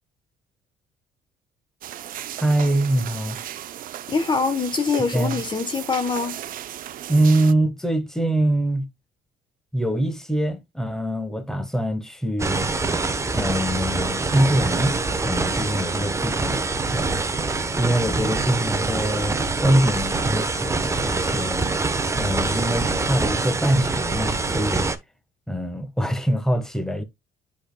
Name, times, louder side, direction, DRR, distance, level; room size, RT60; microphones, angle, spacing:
sound 1, 1.8-7.5, right 12 dB, 55° right, 0.6 m, -35 dB
voice 1, 2.4-3.4 5.1-5.4 7.1-8.9 9.7-12.7 13.3-16.6 16.9-17.2 17.5-21.6 22.1-24.9 25.5-27.0, right 1 dB, 5° left, 1.4 m, -24 dB
voice 2, 4.1-6.4, left 4 dB, 25° left, 1.1 m, -24 dB
sound 2, 12.4-25.0, right 3 dB, 15° right, 1.0 m, -25 dB
10.0 x 5.3 x 2.2 m
cardioid pair, 110°, 17 cm